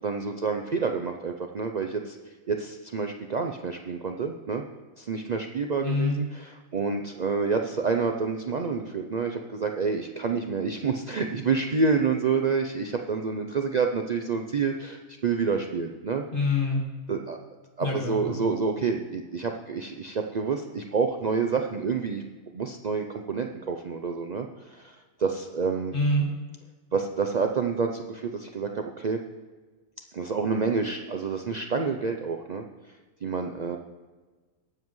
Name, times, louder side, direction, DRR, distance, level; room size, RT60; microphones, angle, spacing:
voice 1, 0.0-2.2 2.5-4.6 5.0-16.2 17.1-17.4 17.8-22.2 22.5-25.9 26.9-29.2 30.1-32.6 33.2-33.8, right 5 dB, 75° right, 4 dB, 0.4 m, -28 dB
voice 2, 5.8-6.2 16.3-16.8 17.8-18.4 25.9-26.3, left 2 dB, 35° left, -2 dB, 1.9 m, -25 dB
19.5 x 7.4 x 3.1 m, 1.3 s
omnidirectional pair, 1.5 m